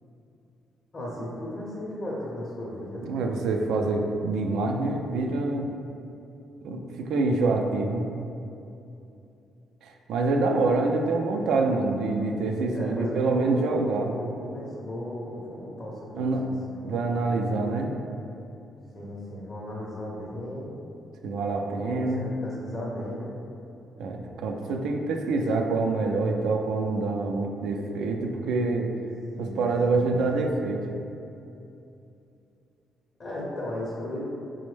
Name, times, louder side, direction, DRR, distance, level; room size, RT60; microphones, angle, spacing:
voice 1, 0.9-3.1 11.0-11.1 12.7-17.8 18.9-20.8 21.7-23.4 29.4-30.1 30.4-30.6 33.2-34.4, left 1 dB, 40° left, -6 dB, 0.6 m, -36 dB
voice 2, 3.0-5.7 6.6-8.1 9.8-14.1 16.1-16.4 16.8-17.9 21.2-22.3 24.0-28.9 29.4-30.8, right 3 dB, 80° right, 3 dB, 0.3 m, -26 dB
4.3 x 2.1 x 3.1 m, 2.7 s
cardioid pair, 90°, 0 cm